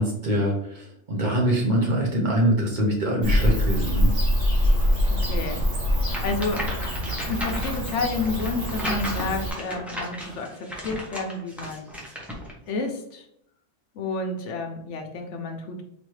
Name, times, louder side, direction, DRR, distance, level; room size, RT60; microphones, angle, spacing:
voice 1, 0.0-4.1, right 1 dB, 45° right, -1 dB, 1.0 m, -24 dB
Bird / Cricket, 3.2-9.5, left 1 dB, 70° right, 1.7 m, -24 dB
voice 2, 5.1-5.6 5.9-6.7 7.3-11.9 12.7-13.3 13.9-15.8, left 3 dB, 75° left, 4 dB, 1.0 m, -30 dB
sound 1, 6.1-12.5, equal, ahead, 0.7 m, -35 dB
3.9 x 3.1 x 3.1 m, 0.73 s
omnidirectional pair, 1.2 m